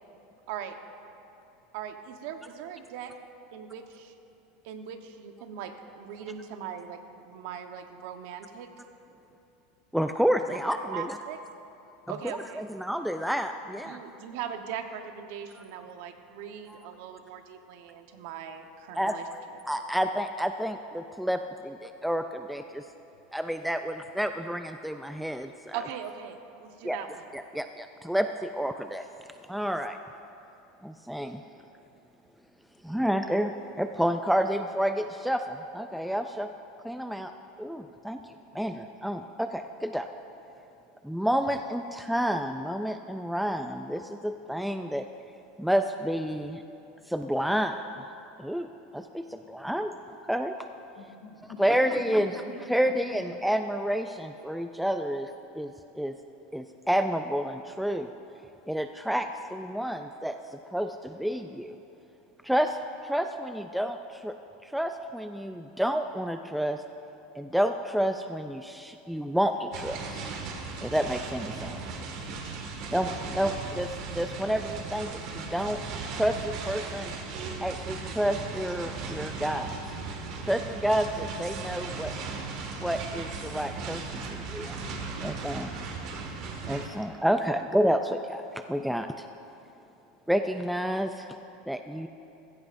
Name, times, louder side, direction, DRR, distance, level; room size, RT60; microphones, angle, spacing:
voice 1, 0.5-0.8 1.7-3.1 3.5-4.1 4.6-8.7 10.9-11.4 12.1-12.6 13.8-19.6 25.7-27.2, right 8 dB, 65° right, 6 dB, 1.1 m, -40 dB
voice 2, 9.9-11.2 12.6-14.0 16.7-16.8 18.9-19.2 19.7-22.8 23.3-25.8 26.8-27.0 27.3-29.0 29.5-30.0 30.8-31.4 32.8-36.5 36.8-37.3 37.6-38.2 38.5-40.1 41.0-45.0 45.6-46.6 47.1-48.1 48.4-48.7 48.9-50.5 51.6-52.3 52.7-55.3 55.6-56.1 56.5-58.1 58.7-60.4 60.7-61.8 62.4-62.8 63.0-64.3 64.6-66.8 67.4-70.2 70.8-71.8 72.9-75.8 76.1-77.1 77.6-79.7 80.4-82.1 82.8-84.8 85.2-85.8 86.7-89.2 90.3-91.3 91.7-92.1, equal, ahead, 7 dB, 0.3 m, -29 dB
voice 3, 51.0-53.0, left 2 dB, 55° left, 2 dB, 2.1 m, -45 dB
sound 1, 69.7-86.9, right 4 dB, 50° right, 1.8 m, -37 dB
19.5 x 16.0 x 2.6 m, 2.8 s
supercardioid pair, 145°, 0 cm